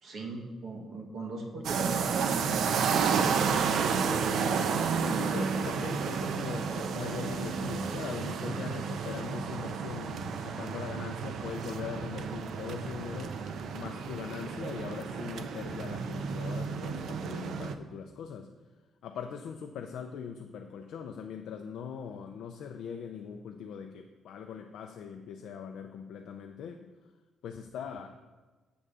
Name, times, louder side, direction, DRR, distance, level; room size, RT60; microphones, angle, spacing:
voice 1, 0.0-3.9, right 2 dB, 40° right, 0 dB, 1.2 m, -40 dB
sound 1, 1.6-17.7, right 6 dB, 55° right, 0.4 m, -31 dB
voice 2, 5.0-13.5 13.7-18.5 19.0-26.9 27.4-28.2, left 7 dB, 70° left, 5 dB, 0.4 m, -41 dB
7.8 x 3.7 x 6.7 m, 1.3 s
cardioid pair, 180°, 0 cm